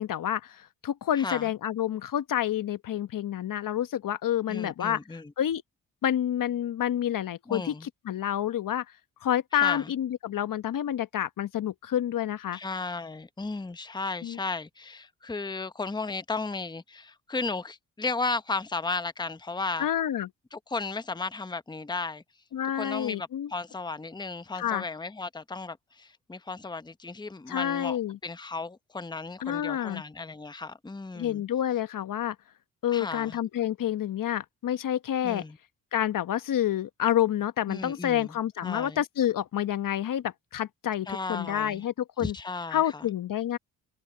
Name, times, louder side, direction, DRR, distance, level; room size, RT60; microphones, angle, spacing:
voice 1, 0.0-5.6 6.0-8.8 9.2-12.6 14.2-14.4 19.8-20.3 22.5-23.5 24.6-24.8 27.5-28.2 29.4-30.0 31.1-32.4 32.8-35.4 35.9-42.3 42.7-43.6, left 11 dB, 60° left, 1.1 m, -28 dB
voice 2, 1.2-1.5 4.5-5.3 7.5-7.9 9.5-9.9 12.5-19.9 20.5-22.2 22.8-31.4 32.9-33.4 35.2-35.6 37.7-38.3 38.6-39.0 41.1-41.8 42.2-43.0, left 3 dB, 10° left, 0.9 m, -35 dB
supercardioid pair, 55°, 38 cm